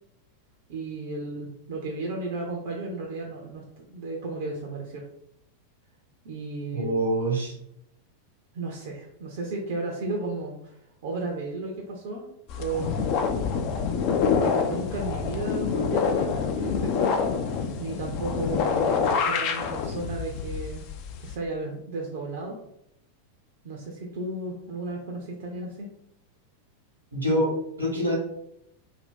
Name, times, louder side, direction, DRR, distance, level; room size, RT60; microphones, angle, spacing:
voice 1, 0.7-5.1 6.2-6.9 8.5-12.3 12.5-12.9 14.1-17.3 17.8-20.9 21.2-22.6 23.6-25.9, right 2 dB, 55° right, 0 dB, 0.5 m, -34 dB
voice 2, 6.7-7.5 27.1-27.5 27.8-28.2, right 1 dB, 80° right, -1 dB, 1.0 m, -25 dB
sound 1, 12.5-21.3, left 6 dB, 45° left, 0.3 m, -26 dB
2.6 x 2.2 x 3.6 m, 0.76 s
figure-of-eight pair, 90°, 0 cm